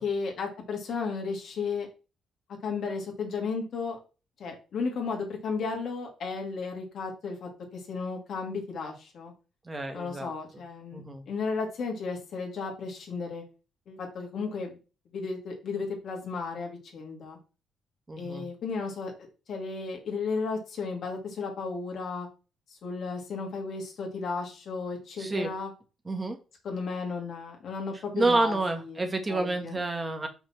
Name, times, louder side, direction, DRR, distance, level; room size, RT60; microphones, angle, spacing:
voice 1, 0.0-1.9 2.6-4.0 4.4-9.3 9.9-13.4 13.9-14.8 15.1-17.4 18.2-19.1 19.5-22.3 22.7-25.7 26.6-29.8, left 4 dB, 65° left, 1 dB, 2.4 m, -34 dB
voice 2, 9.6-10.3 10.9-11.2 18.1-18.5 25.2-25.5 26.1-26.4 28.1-30.3, right 2 dB, 25° right, 5 dB, 1.4 m, -29 dB
5.7 x 4.2 x 5.9 m, 0.32 s
cardioid pair, 90°, 0 cm